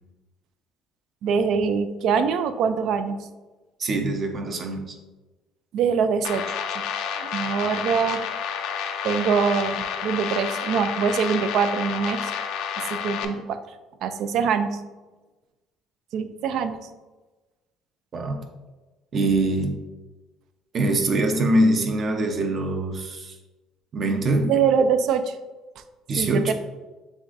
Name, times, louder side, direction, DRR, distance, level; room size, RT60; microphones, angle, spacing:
voice 1, 1.2-3.2 5.7-6.8 7.2-8.2 9.0-12.3 12.8-13.6 14.0-14.8 16.1-16.8 24.4-25.4 26.2-26.5, right 6 dB, 65° right, 10 dB, 0.3 m, -24 dB
voice 2, 3.8-5.0 18.1-18.4 19.1-19.8 20.7-23.3 23.9-24.5 26.1-26.5, right 2 dB, 45° right, 3 dB, 0.7 m, -23 dB
sound 1, 6.2-13.2, left 7 dB, 75° left, 0.4 m, -30 dB
6.9 x 2.6 x 2.5 m, 1.2 s
supercardioid pair, 90°, 0 cm